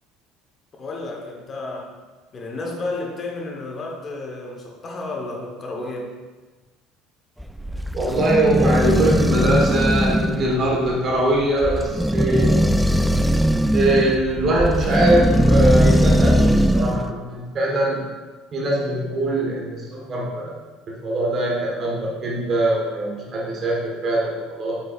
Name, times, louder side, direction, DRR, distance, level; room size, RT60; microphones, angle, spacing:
voice 1, 0.8-2.0 2.3-6.1, left 2 dB, 35° left, 1 dB, 1.4 m, -32 dB
sound 1, 7.4-17.1, equal, ahead, 0.3 m, -19 dB
voice 2, 7.9-12.6 13.7-18.0 18.5-20.6 20.9-24.8, right 1 dB, 40° right, -3 dB, 1.7 m, -22 dB
8.0 x 6.4 x 2.6 m, 1.3 s
figure-of-eight pair, 60°, 0 cm